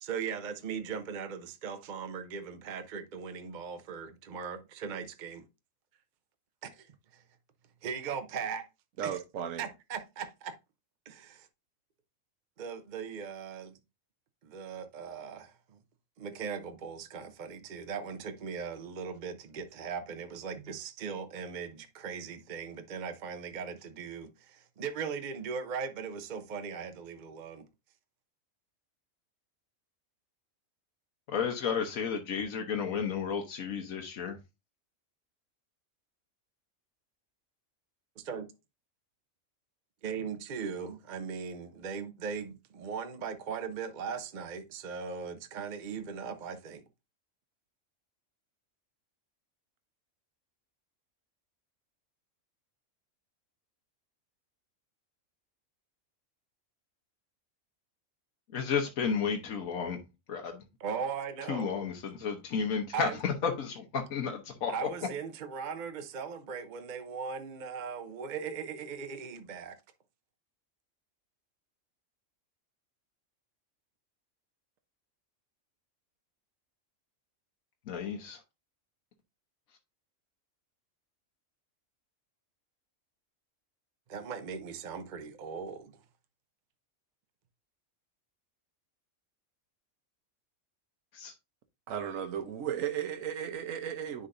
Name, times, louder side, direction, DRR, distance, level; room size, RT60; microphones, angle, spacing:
voice 1, 0.0-5.4 6.6-7.2 7.8-8.6 9.0-9.2 9.6-10.5 11.1-11.5 12.6-13.7 14.4-15.8 16.2-27.7 38.2-38.5 40.0-46.8 60.8-61.7 62.9-63.2 64.7-69.8 84.1-85.9, right 6 dB, 45° right, 0.7 m, -39 dB
voice 2, 9.0-9.7 91.9-94.3, right 9 dB, 75° right, 1.2 m, -35 dB
voice 3, 31.3-34.4 58.5-60.0 60.3-60.6 61.5-64.7 77.9-78.4 91.1-91.3, left 6 dB, 85° left, 1.4 m, -32 dB
9.9 x 3.9 x 2.6 m
omnidirectional pair, 1.4 m